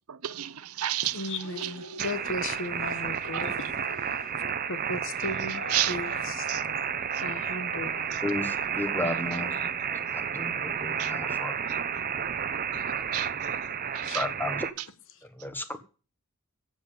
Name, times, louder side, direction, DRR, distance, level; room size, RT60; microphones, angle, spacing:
voice 1, 0.1-2.1 3.3-3.5 5.7-6.6 7.1-7.2 8.1-8.2 11.0-11.1 12.7-12.8 13.1-14.3, right 13 dB, 75° right, 0.7 m, -33 dB
voice 2, 1.0-6.7 7.2-8.1 9.5-9.7 14.0-14.2, left 2 dB, 60° left, 1.3 m, -37 dB
sound 1, 1.4-9.3 9.6-9.7, left 1 dB, 80° left, 5.5 m, -46 dB
sound 2, 2.0-14.7, right 7 dB, 40° right, 0.8 m, -31 dB
voice 3, 8.2-11.5 12.7-12.8 14.1-14.7 15.3-15.8, left 2 dB, 10° left, 1.4 m, -34 dB
10.5 x 8.0 x 8.5 m
head